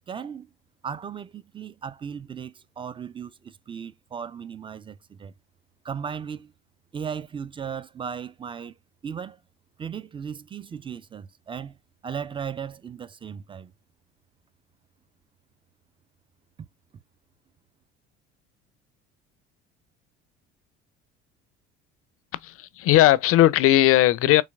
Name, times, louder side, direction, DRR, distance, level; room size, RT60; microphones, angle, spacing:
voice 1, 0.1-0.5 0.8-5.3 5.8-6.5 6.9-8.8 9.0-9.4 9.8-11.8 12.0-13.7 16.6-16.7, right 7 dB, 15° right, 0.4 m, -36 dB
voice 2, 22.4-24.4, left 14 dB, 40° left, 0.5 m, -18 dB
4.0 x 3.1 x 2.3 m
figure-of-eight pair, 60°, 34 cm